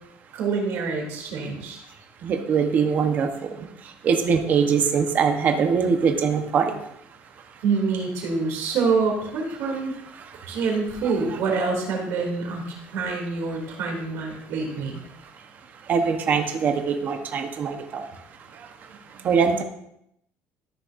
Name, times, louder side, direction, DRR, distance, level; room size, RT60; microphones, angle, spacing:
voice 1, 0.3-1.8 7.6-9.9 10.5-15.0 19.2-19.3, right 4 dB, 60° right, 0 dB, 2.6 m, -26 dB
voice 2, 1.9-6.9 7.2-7.6 10.1-10.6 11.0-11.4 14.4-14.5 15.1-19.6, right 6 dB, 35° right, 5 dB, 0.9 m, -24 dB
13.5 x 6.5 x 2.5 m, 0.78 s
cardioid pair, 165°, 5 cm